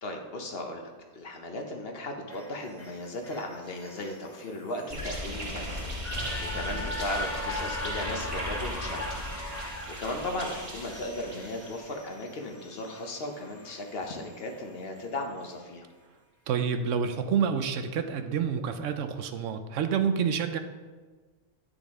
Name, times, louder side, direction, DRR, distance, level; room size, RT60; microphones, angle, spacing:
voice 1, 0.0-5.9 6.4-9.0 10.0-15.9, left 1 dB, 55° left, 3 dB, 1.0 m, -36 dB
sound 1, 2.3-14.6 15.0-15.1, left 1 dB, 15° left, 0.7 m, -40 dB
sound 2, 4.9-11.9, equal, 25° right, 1.3 m, -37 dB
voice 2, 16.5-20.6, right 7 dB, 75° right, 8 dB, 0.9 m, -28 dB
10.0 x 5.1 x 3.6 m, 1.4 s
omnidirectional pair, 1.3 m